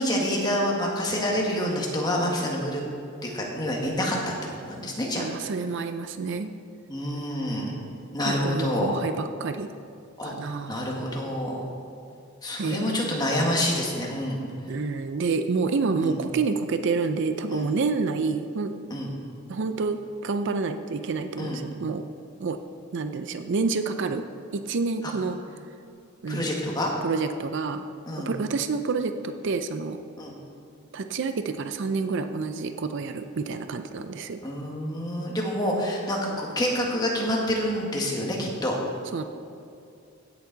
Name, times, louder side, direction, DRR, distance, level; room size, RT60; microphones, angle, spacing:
voice 1, 0.0-2.8 3.2-4.2 4.6-5.3 6.9-7.8 8.1-8.9 10.2-10.3 10.7-11.6 12.4-14.4 16.0-16.2 17.5-17.7 18.9-19.1 21.4-21.6 26.3-26.9 28.1-28.3 30.2-30.3 34.4-38.8, left 1 dB, 20° left, -2 dB, 1.5 m, -27 dB
voice 2, 5.2-6.5 8.2-9.7 10.2-10.8 12.6-13.1 14.7-18.8 19.5-22.0 22.4-22.6 22.9-24.2 24.5-25.4 26.2-26.6 27.0-27.9 28.3-30.0 30.9-34.4 39.1-39.2, right 4 dB, 55° right, 8 dB, 0.4 m, -28 dB
16.0 x 7.0 x 3.9 m, 2.5 s
head